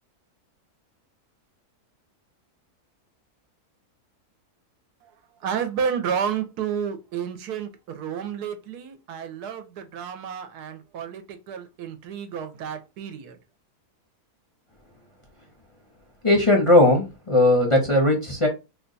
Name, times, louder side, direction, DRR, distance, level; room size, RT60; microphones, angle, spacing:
voice 1, 5.4-13.4, right 7 dB, 85° right, 1.2 m, -31 dB
voice 2, 16.2-18.5, left 1 dB, 30° left, 0.6 m, -18 dB
3.0 x 2.2 x 3.8 m
omnidirectional pair, 1.6 m